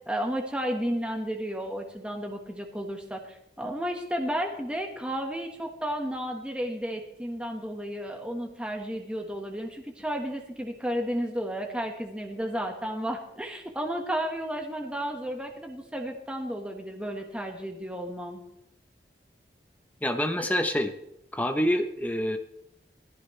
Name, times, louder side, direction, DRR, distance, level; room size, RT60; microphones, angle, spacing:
voice 1, 0.1-18.4, equal, 5° right, 2 dB, 1.5 m, -33 dB
voice 2, 20.0-20.9 21.3-22.4, equal, 10° left, 6 dB, 0.8 m, -26 dB
20.0 x 14.5 x 3.3 m, 0.81 s
head